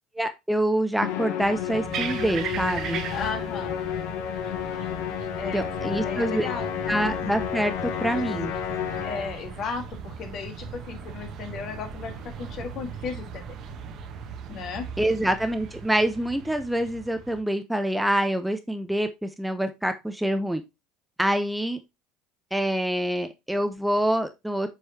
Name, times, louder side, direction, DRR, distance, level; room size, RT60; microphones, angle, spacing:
voice 1, 0.2-3.0 5.5-6.5 6.9-7.7 8.0-8.5 15.0-20.6 21.2-21.8 22.5-24.7, right 1 dB, 5° right, 8 dB, 0.7 m, -26 dB
Musical instrument, 1.0-9.5, left 10 dB, 65° left, 1.0 m, -31 dB
sound 1, 1.4-17.4, right 7 dB, 50° right, 1.1 m, -38 dB
voice 2, 3.1-3.8 5.3-6.7 9.0-13.4 14.5-14.9, left 5 dB, 50° left, 5 dB, 1.6 m, -35 dB
7.8 x 4.8 x 2.8 m, 0.23 s
figure-of-eight pair, 65°, 0 cm